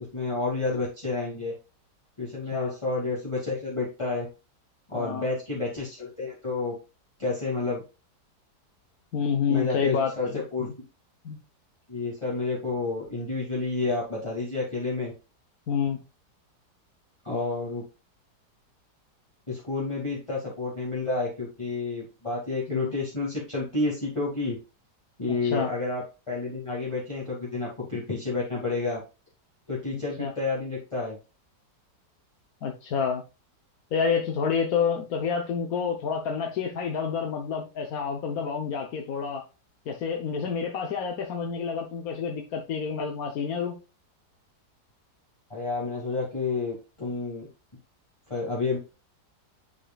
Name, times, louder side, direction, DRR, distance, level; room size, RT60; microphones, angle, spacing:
voice 1, 0.1-1.5 2.2-4.3 4.9-6.7 7.2-7.8 9.5-10.7 11.9-15.1 17.2-17.8 19.5-24.6 25.2-29.0 29.7-31.2 45.5-47.5 48.3-48.8, left 3 dB, 15° left, -6 dB, 2.2 m, -30 dB
voice 2, 9.1-10.7 11.2-11.4 15.7-16.0 22.7-22.9 25.3-25.7 29.9-30.3 32.6-33.2 33.9-39.4 39.9-43.8, left 6 dB, 60° left, 2 dB, 1.3 m, -29 dB
10.0 x 4.9 x 2.3 m, 0.30 s
omnidirectional pair, 1.8 m